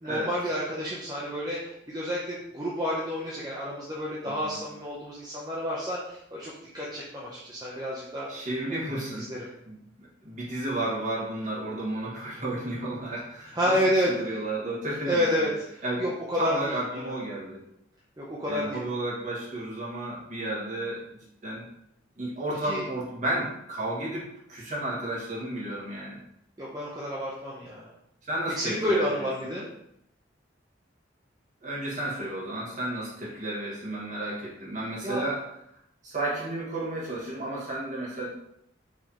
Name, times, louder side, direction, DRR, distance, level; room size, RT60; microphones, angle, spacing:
voice 1, 0.0-8.5 8.9-9.5 13.5-14.2 15.1-17.2 18.2-18.8 22.6-22.9 26.6-27.9 28.5-29.7 35.0-35.2, equal, 20° right, -6 dB, 0.6 m, -30 dB
voice 2, 4.2-4.6 8.3-9.8 10.2-13.8 14.1-15.5 15.8-16.0 16.4-17.6 18.4-21.0 21.4-21.6 22.2-26.2 28.2-29.5 31.6-35.4 36.0-38.3, right 1 dB, 40° right, -6 dB, 1.5 m, -32 dB
4.8 x 3.4 x 2.8 m, 0.78 s
head